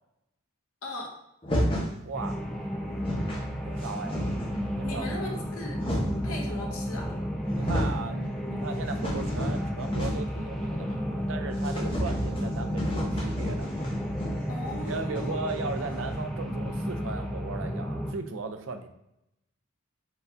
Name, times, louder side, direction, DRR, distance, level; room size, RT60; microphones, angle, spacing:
voice 1, 0.8-1.2 4.8-5.9 6.2-7.1 14.5-15.4, left 2 dB, 85° left, 0 dB, 1.0 m, -38 dB
sound 1, 1.4-2.0 2.6-2.7 2.9-3.4 3.8-4.7 5.4-6.3 7.1-7.2 7.4-8.0 8.4-10.4 10.7-10.8 11.1-11.2 11.6-16.1, equal, 25° left, 0.8 m, -32 dB
voice 2, 2.0-2.4 3.6-4.2 4.8-5.5 7.5-13.7 14.9-18.9, right 4 dB, 65° right, 7 dB, 0.5 m, -37 dB
sound 2, 2.1-18.1, equal, ahead, 0.4 m, -32 dB
4.6 x 2.6 x 3.4 m, 0.83 s
head